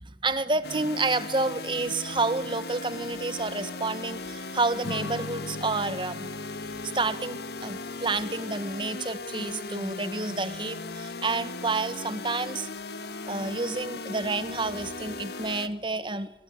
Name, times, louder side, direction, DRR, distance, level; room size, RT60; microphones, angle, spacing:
voice 1, 0.0-6.3 6.9-12.7 13.3-16.3, right 3 dB, 25° right, 12 dB, 1.7 m, -29 dB
sound 1, 0.6-15.7, left 3 dB, 60° left, 2.0 m, -38 dB
Strum, 4.8-9.5, left 3 dB, 80° left, 1.1 m, -42 dB
25.0 x 22.5 x 9.6 m, 0.82 s
head